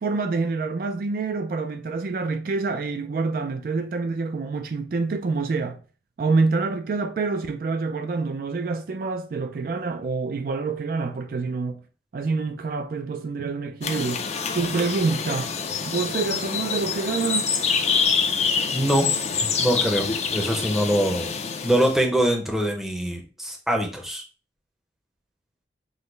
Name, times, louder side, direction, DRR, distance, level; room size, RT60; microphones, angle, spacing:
voice 1, 0.0-5.8 6.2-11.8 12.1-14.2 14.5-15.5 15.9-17.5, right 4 dB, 55° right, 0.3 m, -27 dB
sound 1, 13.8-22.0, left 5 dB, 40° left, 0.4 m, -26 dB
voice 2, 18.7-19.2 19.6-21.3 21.6-24.2, right 1 dB, ahead, 0.6 m, -23 dB
6.1 x 2.0 x 3.2 m
head